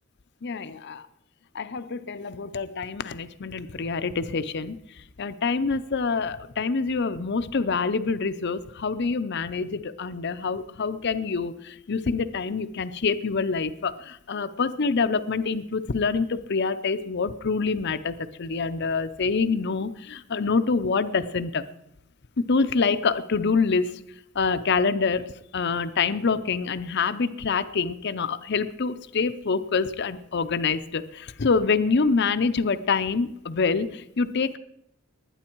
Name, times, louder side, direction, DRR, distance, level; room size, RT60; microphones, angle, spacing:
voice 1, 0.4-1.1 1.5-4.8 5.2-21.6 22.4-23.9 24.3-25.3 25.5-34.6, left 4 dB, 55° left, 12 dB, 0.6 m, -26 dB
20.5 x 9.7 x 4.6 m, 0.78 s
head